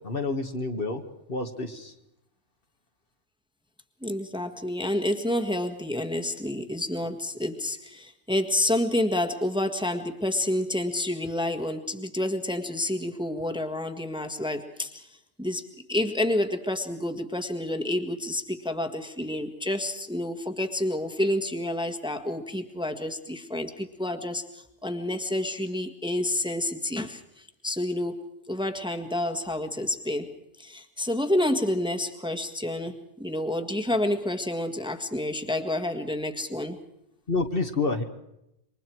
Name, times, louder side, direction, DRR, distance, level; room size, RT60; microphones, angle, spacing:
voice 1, 0.0-1.0 1.3-1.9 37.3-38.0, left 3 dB, 50° left, 5 dB, 2.1 m, -28 dB
voice 2, 4.0-15.1 15.4-30.3 30.6-36.8, left 1 dB, 5° right, 4 dB, 1.7 m, -29 dB
28.0 x 24.5 x 4.7 m, 0.84 s
omnidirectional pair, 1.2 m